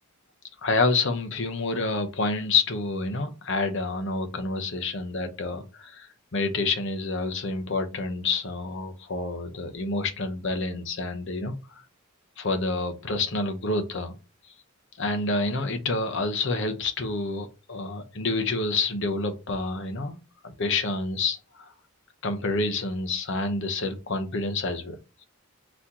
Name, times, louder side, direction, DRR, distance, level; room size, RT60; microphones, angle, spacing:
voice 1, 0.6-11.8 12.4-14.1 15.0-20.2 20.4-21.7 22.2-25.0, left 3 dB, 55° left, 0.8 m, -28 dB
4.2 x 2.9 x 3.6 m
head